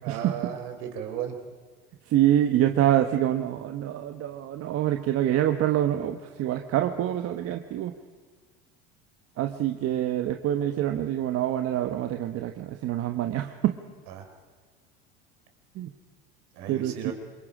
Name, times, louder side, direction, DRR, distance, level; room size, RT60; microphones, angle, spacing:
voice 1, 0.0-1.4 14.1-14.3 16.5-17.1, right 9 dB, 70° right, 5 dB, 3.9 m, -35 dB
voice 2, 2.1-7.9 9.4-13.7 15.7-15.9 16.7-17.1, right 12 dB, 50° right, 6 dB, 1.3 m, -26 dB
27.0 x 22.5 x 5.0 m, 1.5 s
hypercardioid pair, 85°, 29 cm